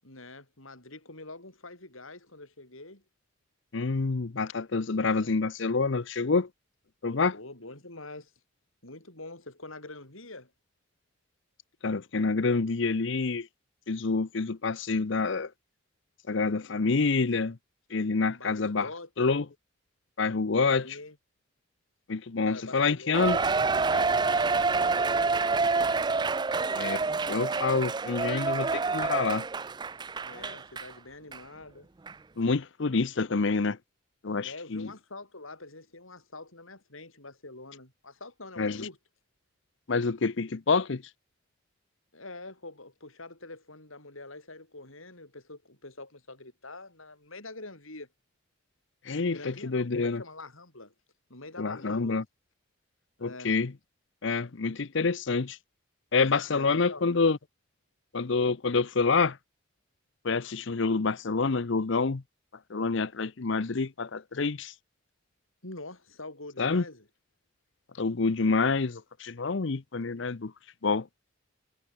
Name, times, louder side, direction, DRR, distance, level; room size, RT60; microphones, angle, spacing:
voice 1, 0.0-3.0 5.0-5.3 7.3-8.3 8.8-10.5 18.3-19.1 20.8-21.2 22.5-23.4 23.8-26.0 30.2-31.9 34.4-39.0 42.1-48.1 49.3-50.9 51.3-52.2 53.2-53.5 56.5-57.0 65.6-67.1, left 2 dB, 75° left, 7.1 m, -45 dB
voice 2, 3.7-6.5 7.0-7.4 11.8-13.5 13.9-15.5 16.3-17.6 17.9-18.9 19.2-19.4 20.2-20.9 22.1-23.4 26.7-27.0 27.3-29.4 32.4-33.8 34.2-34.9 38.6-38.9 39.9-41.0 49.1-50.2 51.6-52.2 53.2-53.7 54.2-55.6 56.1-57.4 58.1-59.4 60.2-62.2 62.7-64.7 66.6-66.8 68.0-70.5 70.8-71.1, left 4 dB, 60° left, 0.7 m, -27 dB
Cheering, 23.1-30.9 31.3-31.4 32.1-32.2, right 4 dB, 20° right, 0.4 m, -27 dB
head